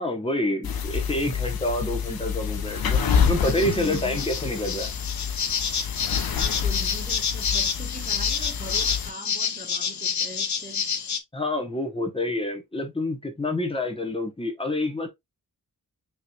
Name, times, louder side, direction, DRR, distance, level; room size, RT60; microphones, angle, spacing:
voice 1, 0.0-4.9 11.3-15.1, left 1 dB, 15° left, 0.9 m, -28 dB
sound 1, 0.6-9.1, left 7 dB, 90° left, 0.7 m, -28 dB
sound 2, 2.9-11.2, left 7 dB, 55° left, 0.6 m, -29 dB
voice 2, 3.6-4.3 6.4-10.8, right 3 dB, 25° right, 0.5 m, -40 dB
5.6 x 3.1 x 2.3 m
wide cardioid pair, 160°, 35 cm